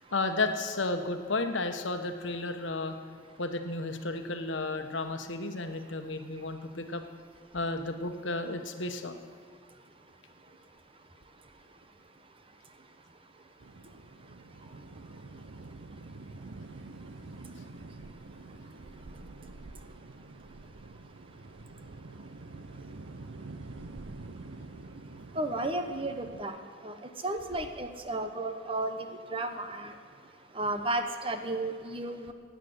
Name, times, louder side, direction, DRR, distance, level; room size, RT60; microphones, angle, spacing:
voice 1, 0.1-2.9 3.4-7.0 7.5-9.2, left 2 dB, 80° left, 7 dB, 1.2 m, -33 dB
sound 1, 13.6-26.4, right 2 dB, 85° right, 0.8 m, -47 dB
voice 2, 25.3-26.6 26.8-27.0 27.2-29.9 30.5-32.3, right 2 dB, 30° right, 7 dB, 1.1 m, -33 dB
16.5 x 9.2 x 7.9 m, 2.2 s
head